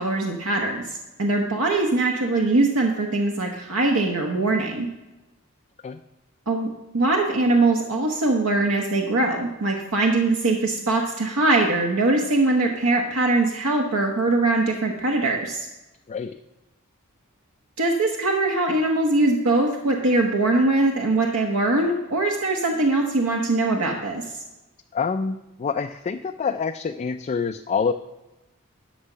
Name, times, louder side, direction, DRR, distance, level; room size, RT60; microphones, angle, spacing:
voice 1, 0.0-4.9 6.5-15.7 17.8-24.4, right 2 dB, 75° right, 1 dB, 1.1 m, -22 dB
voice 2, 24.9-27.9, left 5 dB, 30° left, 7 dB, 0.3 m, -26 dB
12.0 x 6.0 x 5.6 m, 1.0 s
head